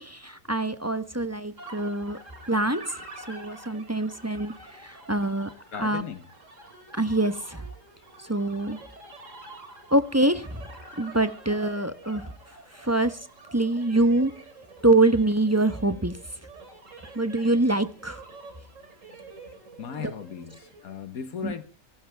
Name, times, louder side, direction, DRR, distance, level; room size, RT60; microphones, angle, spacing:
voice 1, 0.0-2.2 2.5-5.5 5.8-6.0 6.9-7.6 8.2-8.8 9.9-10.6 11.0-12.2 12.7-13.2 13.5-14.3 14.8-16.2 17.1-18.2 21.4-21.5, right 2 dB, 15° right, 0.8 m, -25 dB
sound 1, 1.6-21.0, right 2 dB, 60° right, 3.2 m, -47 dB
voice 2, 5.7-6.3 19.8-21.6, left 7 dB, 80° left, 1.6 m, -37 dB
24.0 x 12.5 x 3.4 m
omnidirectional pair, 1.5 m